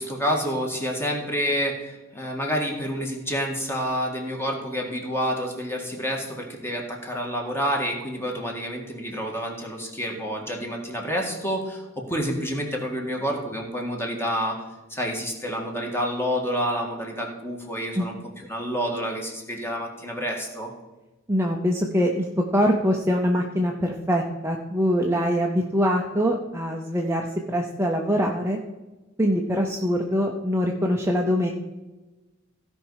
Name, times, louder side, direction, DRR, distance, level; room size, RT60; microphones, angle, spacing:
voice 1, 0.0-14.6 14.9-18.2 18.5-20.7, equal, 10° left, 1 dB, 1.8 m, -28 dB
voice 2, 21.3-28.6 29.2-31.5, equal, 10° right, 1 dB, 0.7 m, -23 dB
16.0 x 5.4 x 4.8 m, 1.1 s
head